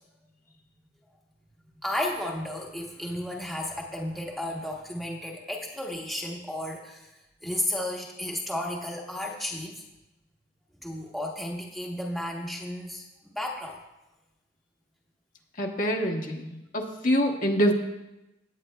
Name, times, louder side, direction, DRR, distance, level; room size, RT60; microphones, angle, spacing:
voice 1, 1.8-7.1 7.4-9.8 10.8-13.8, left 1 dB, ahead, -2 dB, 1.1 m, -33 dB
voice 2, 15.6-17.7, equal, 45° left, 1 dB, 1.0 m, -25 dB
16.5 x 9.1 x 2.3 m, 0.94 s
head